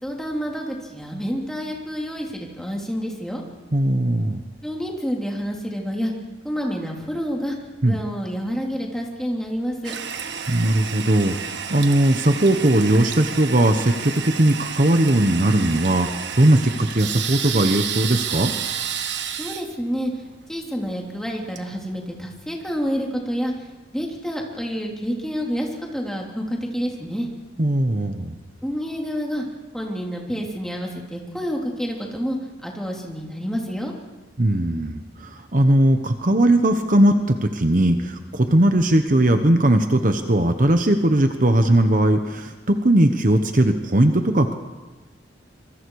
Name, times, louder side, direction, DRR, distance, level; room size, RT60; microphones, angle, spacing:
voice 1, 0.0-3.4 4.6-6.1 6.4-7.6 7.8-9.9 19.4-20.1 20.5-23.5 23.9-27.3 28.6-29.4 29.7-33.9, equal, 5° left, -1 dB, 3.2 m, -28 dB
voice 2, 3.7-4.4 7.8-8.0 10.5-16.1 16.4-18.5 27.6-28.4 34.4-44.5, right 1 dB, 45° right, 7 dB, 1.1 m, -19 dB
Toilet flush, 9.8-22.5, right 8 dB, 70° right, 1.3 m, -31 dB
26.5 x 24.0 x 4.8 m, 1.2 s
head